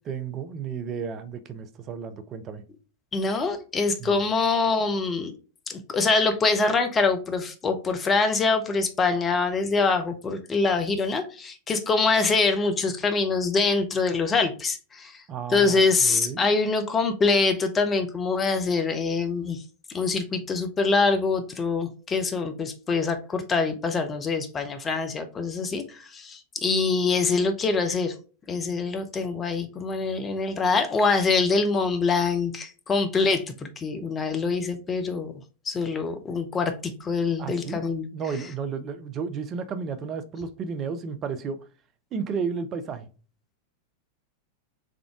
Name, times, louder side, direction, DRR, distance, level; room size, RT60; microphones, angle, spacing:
voice 1, 0.0-2.6 4.0-4.2 15.3-16.5 37.4-37.8 38.1-41.6 42.1-43.1, right 6 dB, 30° right, 10 dB, 0.6 m, -33 dB
voice 2, 3.1-5.3 5.7-15.2 15.5-19.6 19.9-28.1 28.5-35.3 35.7-38.1, left 4 dB, 20° left, 7 dB, 0.6 m, -24 dB
3.7 x 3.4 x 3.6 m, 0.35 s
figure-of-eight pair, 90°, 0 cm